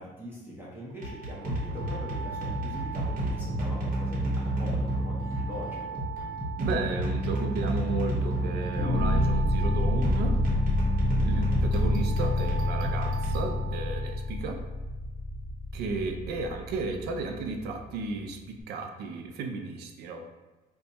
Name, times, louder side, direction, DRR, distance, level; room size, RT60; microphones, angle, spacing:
voice 1, 0.0-6.0 10.8-11.2, equal, 10° right, -6 dB, 0.8 m, -42 dB
sound 1, 0.9-14.1, right 1 dB, 55° right, 1.1 m, -31 dB
voice 2, 6.6-10.4 11.2-14.6 15.7-20.2, right 3 dB, 75° right, 5 dB, 0.5 m, -33 dB
sound 2, 8.7-17.8, left 2 dB, 20° left, 0.8 m, -28 dB
2.6 x 2.3 x 4.1 m, 1.2 s
cardioid pair, 110°, 17 cm